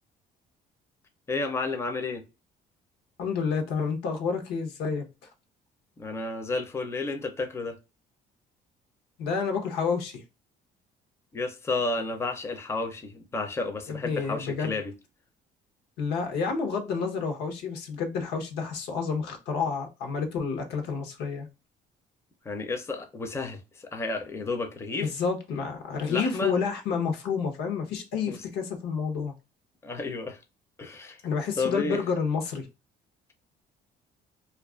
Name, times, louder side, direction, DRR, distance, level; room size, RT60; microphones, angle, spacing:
voice 1, 1.3-2.2 6.0-7.8 11.3-14.9 22.4-25.1 26.1-26.5 28.3-28.4 29.8-30.4 30.8-31.2 31.6-32.0, left 3 dB, 15° left, 0.5 m, -31 dB
voice 2, 3.2-5.3 9.2-10.2 13.9-14.8 16.0-21.5 25.0-29.3 31.2-32.7, left 5 dB, 85° left, 0.8 m, -29 dB
2.4 x 2.3 x 2.3 m
cardioid pair, 110°, 17 cm